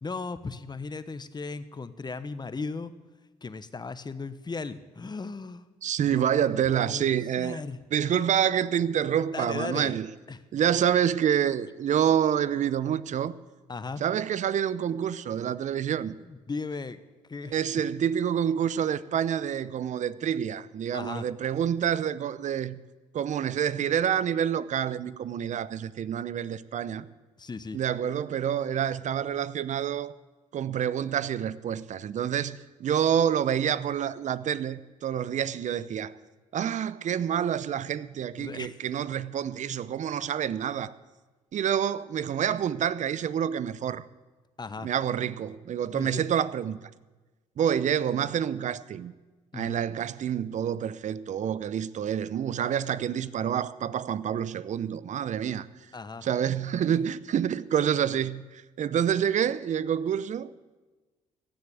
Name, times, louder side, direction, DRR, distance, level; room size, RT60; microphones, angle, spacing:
voice 1, 0.0-2.9 3.4-5.6 6.0-6.4 6.7-7.1 7.4-7.8 9.3-10.0 10.3-10.4 13.7-14.0 16.3-17.0 17.3-17.6 20.9-21.3 27.4-27.8 38.3-38.8 44.6-44.9 45.9-46.3 49.5-49.8 55.9-56.3, left 4 dB, 30° left, 1.1 m, -36 dB
voice 2, 5.8-7.6 7.9-10.1 10.5-13.3 14.0-16.2 17.5-22.8 23.1-27.1 27.7-30.1 30.5-36.2 36.5-40.9 41.5-44.1 44.8-46.8 47.6-49.1 49.5-55.7 56.2-60.5, right 9 dB, 55° right, 0.7 m, -27 dB
16.0 x 7.9 x 8.7 m
hypercardioid pair, 50°, 15 cm